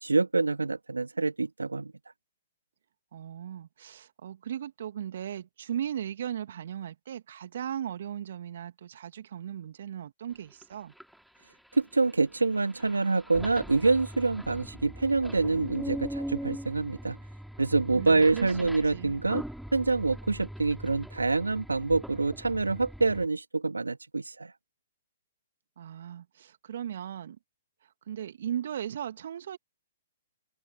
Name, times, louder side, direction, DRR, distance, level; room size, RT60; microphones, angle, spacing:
voice 1, 0.0-1.9 11.7-17.2 17.6-19.4 19.7-24.5, right 3 dB, 85° right, 2.1 m, -26 dB
voice 2, 3.1-10.9 17.9-19.2 25.8-27.4 28.1-29.6, right 10 dB, 60° right, 2.4 m, -37 dB
sound 1, 10.3-10.4 10.6-23.3, equal, ahead, 3.3 m, -41 dB
figure-of-eight pair, 120°, 0 cm